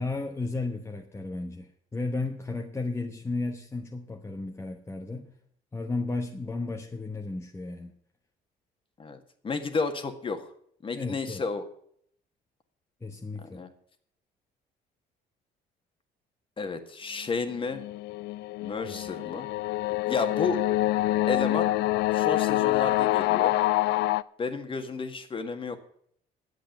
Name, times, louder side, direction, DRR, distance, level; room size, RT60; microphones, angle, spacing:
voice 1, 0.0-5.3 5.7-7.9 10.9-11.4 13.0-13.6 18.8-19.0, left 3 dB, 15° left, 2 dB, 1.2 m, -34 dB
voice 2, 9.0-10.5 10.8-11.6 13.4-13.7 16.6-17.8 18.6-19.5 20.1-20.6 21.3-21.7 22.1-23.6 24.4-25.8, left 4 dB, 30° left, 7 dB, 1.8 m, -32 dB
sound 1, 17.5-24.2, left 16 dB, 85° left, 0.4 m, -26 dB
11.0 x 8.1 x 9.2 m, 0.65 s
cardioid pair, 110°, 17 cm